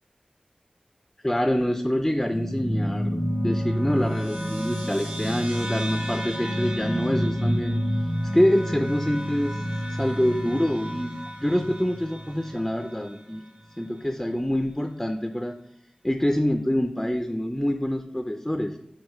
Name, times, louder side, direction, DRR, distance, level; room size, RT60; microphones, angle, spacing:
voice 1, 1.2-7.8 8.3-11.1 11.4-13.4 13.8-15.5 16.0-18.8, equal, 10° left, 6 dB, 0.4 m, -26 dB
sound 1, 2.3-13.1, equal, 85° right, 1.6 m, -29 dB
4.8 x 4.1 x 5.4 m, 0.74 s
wide cardioid pair, 75°, 2 cm